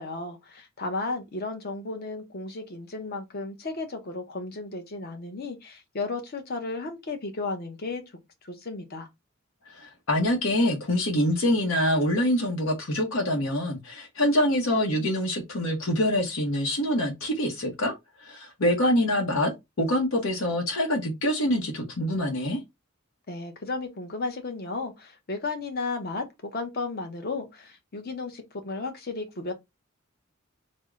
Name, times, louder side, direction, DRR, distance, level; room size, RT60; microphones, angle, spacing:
voice 1, 0.0-8.0 8.4-9.1 23.3-29.5, left 3 dB, 50° left, 0.8 m, -34 dB
voice 2, 9.7-17.9 18.2-19.5 19.8-22.6, left 1 dB, 85° left, 0.9 m, -25 dB
3.5 x 2.1 x 3.5 m
head